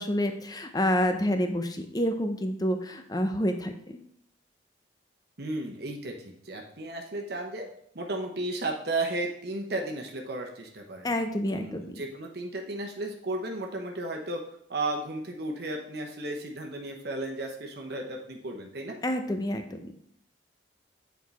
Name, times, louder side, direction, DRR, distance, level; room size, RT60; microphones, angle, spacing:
voice 1, 0.0-3.7 11.0-12.0 19.0-19.8, equal, 20° left, 6 dB, 0.7 m, -28 dB
voice 2, 5.4-7.7 7.9-11.1 11.5-14.4 14.7-19.0, right 2 dB, 60° right, 1 dB, 1.0 m, -34 dB
8.5 x 4.7 x 4.1 m, 0.69 s
head